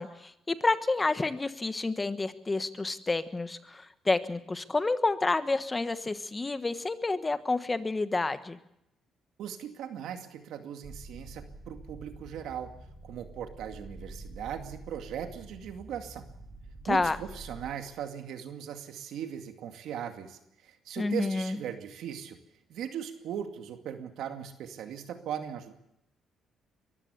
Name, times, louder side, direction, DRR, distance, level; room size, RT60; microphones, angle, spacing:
voice 1, 0.0-8.6 16.8-17.2 21.0-21.6, left 3 dB, 25° left, 11 dB, 1.3 m, -29 dB
voice 2, 9.4-12.7 13.0-16.2 16.9-22.4 22.7-25.7, right 9 dB, 80° right, 6 dB, 2.2 m, -39 dB
sound 1, 10.8-17.7, right 2 dB, 25° right, 4.9 m, -47 dB
23.5 x 14.5 x 8.3 m, 0.80 s
cardioid pair, 90°, 0 cm